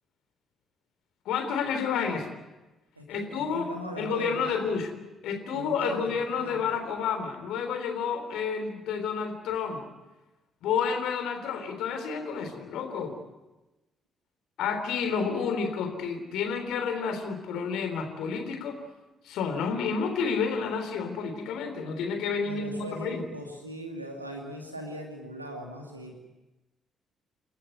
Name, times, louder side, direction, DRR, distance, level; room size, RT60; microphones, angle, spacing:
voice 1, 1.2-2.3 3.1-3.7 4.0-4.9 5.2-9.9 10.6-13.2 14.6-18.8 19.2-23.2, left 6 dB, 60° left, 6 dB, 3.5 m, -30 dB
voice 2, 3.0-4.6 5.5-6.6 22.4-26.1, equal, 90° right, 2 dB, 2.6 m, -39 dB
28.5 x 14.5 x 9.4 m, 1.1 s
figure-of-eight pair, 40°, 0 cm